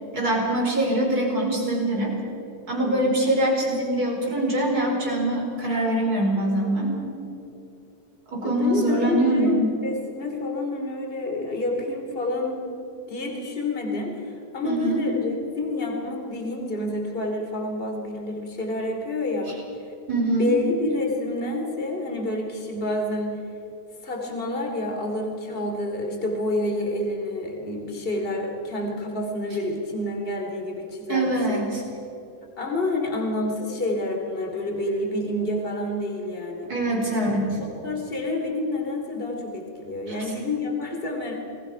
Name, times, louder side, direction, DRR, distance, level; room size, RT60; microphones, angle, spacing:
voice 1, 0.1-2.1 2.7-7.0 8.3-9.7 14.6-15.0 20.1-20.6 31.1-31.8 36.7-37.6 40.1-40.2, right 1 dB, 85° right, -1 dB, 5.5 m, -23 dB
voice 2, 2.8-3.3 8.4-12.6 13.1-19.6 20.4-23.4 24.0-31.6 32.6-36.7 37.6-41.3, left 2 dB, 35° left, 1 dB, 3.0 m, -28 dB
29.0 x 20.0 x 5.7 m, 2.9 s
omnidirectional pair, 1.6 m